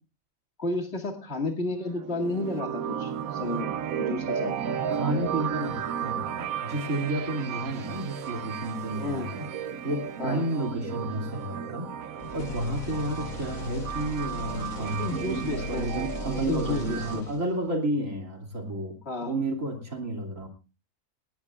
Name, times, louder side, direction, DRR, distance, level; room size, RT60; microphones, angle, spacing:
voice 1, 0.6-4.6 8.9-9.3 10.2-10.4 15.0-16.1 16.5-17.3 19.1-19.3, left 2 dB, 45° left, 3 dB, 2.5 m, -32 dB
sound 1, 1.8-17.2, right 8 dB, 80° right, 1.3 m, -34 dB
voice 2, 4.9-9.5 9.8-20.5, right 1 dB, 65° right, 2 dB, 3.1 m, -31 dB
sound 2, 12.2-17.7, left 2 dB, 80° left, 1.8 m, -38 dB
18.5 x 18.0 x 2.4 m, 0.32 s
omnidirectional pair, 1.4 m